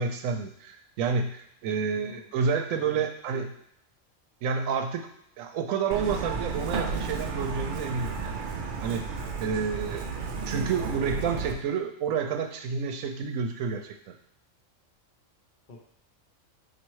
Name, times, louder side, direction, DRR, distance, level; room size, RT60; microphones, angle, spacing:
voice 1, 0.0-3.5 4.4-5.1 5.4-8.3 8.8-9.0 9.4-10.1 10.5-14.1, right 5 dB, 85° right, 5 dB, 1.0 m, -29 dB
voice 2, 1.9-2.3 2.7-3.5 15.7-15.8, left 1 dB, 45° left, -2 dB, 0.7 m, -47 dB
Truck, 5.9-11.5, right 4 dB, 60° right, 0.5 m, -33 dB
4.1 x 2.6 x 4.6 m, 0.71 s
omnidirectional pair, 1.3 m